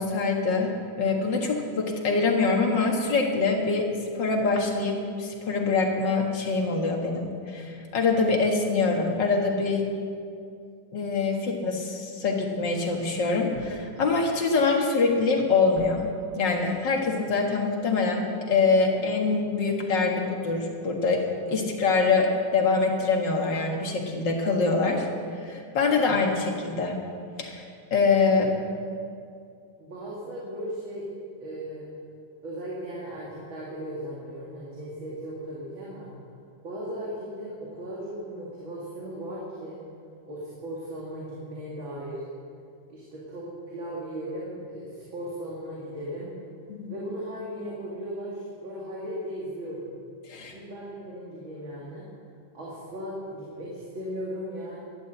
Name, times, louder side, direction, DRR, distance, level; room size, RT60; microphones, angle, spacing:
voice 1, 0.0-9.9 10.9-16.1 16.4-25.0 25.4-27.0 27.4-27.6 27.9-28.5 46.7-46.9 50.3-50.5, left 4 dB, 65° left, 1 dB, 2.3 m, -24 dB
voice 2, 29.8-31.1 31.4-31.9 32.4-36.1 36.6-39.8 40.2-42.2 42.9-46.3 46.9-49.9 50.5-52.1 52.5-54.8, equal, 85° right, -6 dB, 3.2 m, -37 dB
12.0 x 12.0 x 8.0 m, 2.3 s
omnidirectional pair, 2.1 m